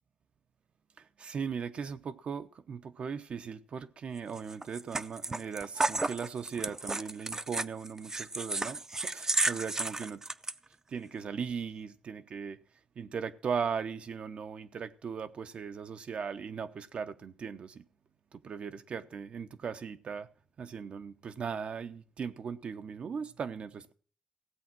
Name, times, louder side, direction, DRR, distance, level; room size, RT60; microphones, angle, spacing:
voice 1, 1.0-10.2 10.9-12.6 13.0-17.8 18.3-20.3 20.6-23.9, right 6 dB, 70° right, 1.0 m, -38 dB
sound 1, 4.4-10.5, right 2 dB, 25° right, 0.6 m, -33 dB
16.0 x 8.5 x 6.1 m
cardioid pair, 85°, 2 cm